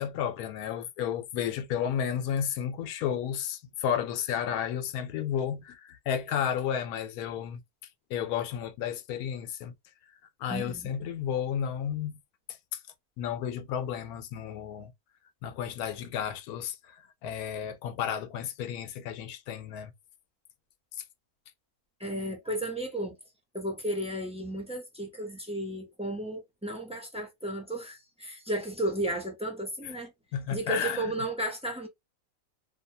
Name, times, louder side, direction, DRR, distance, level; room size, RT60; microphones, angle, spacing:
voice 1, 0.0-7.6 8.1-9.7 10.4-12.2 12.7-12.8 13.2-14.9 15.4-19.9 30.3-31.1, left 8 dB, 85° left, 1.1 m, -32 dB
voice 2, 10.5-10.9 22.0-23.2 23.5-30.1 30.5-31.9, right 1 dB, 5° right, 0.5 m, -33 dB
2.7 x 2.2 x 2.6 m
omnidirectional pair, 1.6 m